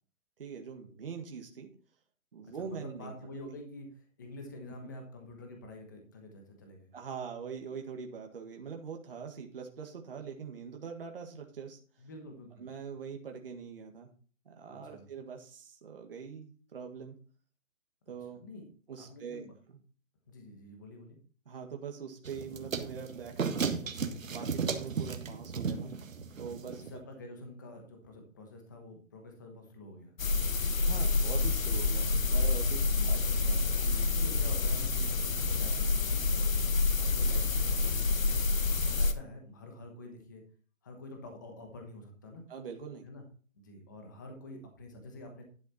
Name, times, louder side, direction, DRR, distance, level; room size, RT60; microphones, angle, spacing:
voice 1, 0.4-1.7 2.3-3.1 6.9-11.8 12.6-14.1 14.4-17.2 18.1-18.4 18.9-19.4 19.7-19.8 21.4-23.8 24.3-25.9 26.4-27.0 30.8-33.2 33.8-34.1 42.5-43.0, right 6 dB, 45° right, 3 dB, 1.8 m, -43 dB
voice 2, 2.4-6.9 12.0-12.7 14.7-15.0 18.4-18.7 19.0-19.5 20.3-21.2 26.6-30.1 30.9-31.1 32.9-38.4 38.9-40.4 40.8-42.4 43.0-43.2 43.5-45.4, left 2 dB, 15° left, 3 dB, 1.1 m, -48 dB
sound 1, 22.3-27.0, right 5 dB, 75° right, 1.6 m, -35 dB
sound 2, 30.2-39.1, left 3 dB, 75° left, 1.4 m, -28 dB
11.5 x 6.3 x 4.1 m, 0.41 s
hypercardioid pair, 175°, 40 cm